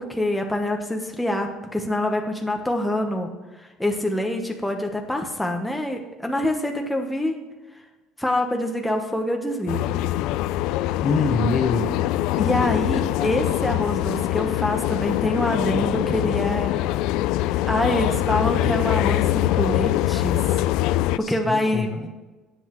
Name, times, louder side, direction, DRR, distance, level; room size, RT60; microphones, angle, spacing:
voice 1, 0.0-3.3 3.6-7.4 8.2-9.8 12.4-16.8 17.6-20.4 21.2-21.9, left 1 dB, 5° left, 2 dB, 1.0 m, -25 dB
Inside a crowded subway (metro) in Vienna Austria, 9.7-21.2, left 14 dB, 75° left, 0.3 m, -23 dB
voice 2, 11.0-11.9 21.2-22.1, left 4 dB, 35° left, 6 dB, 1.1 m, -24 dB
18.0 x 7.9 x 3.1 m, 1.2 s
cardioid pair, 135°, 0 cm